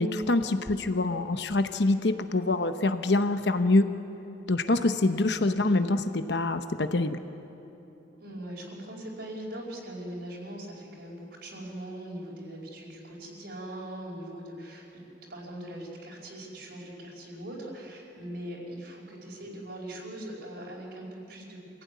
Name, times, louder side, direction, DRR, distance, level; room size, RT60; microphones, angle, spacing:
voice 1, 0.0-3.9 4.5-7.2, left 2 dB, 65° left, 9 dB, 1.0 m, -25 dB
voice 2, 8.1-15.0 15.3-21.8, right 1 dB, 65° right, -4 dB, 5.0 m, -41 dB
27.0 x 16.0 x 9.6 m, 3.0 s
head